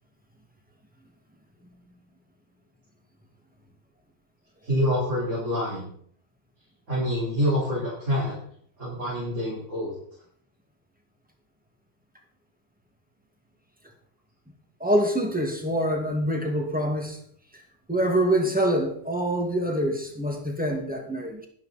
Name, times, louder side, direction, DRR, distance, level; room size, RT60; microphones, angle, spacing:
voice 1, 4.6-5.9 6.9-8.4 8.8-9.9, equal, 85° right, -8 dB, 5.0 m, -26 dB
voice 2, 14.8-17.2 17.9-21.5, right 1 dB, 5° right, 2 dB, 2.1 m, -25 dB
11.5 x 11.5 x 4.3 m, 0.64 s
omnidirectional pair, 1.2 m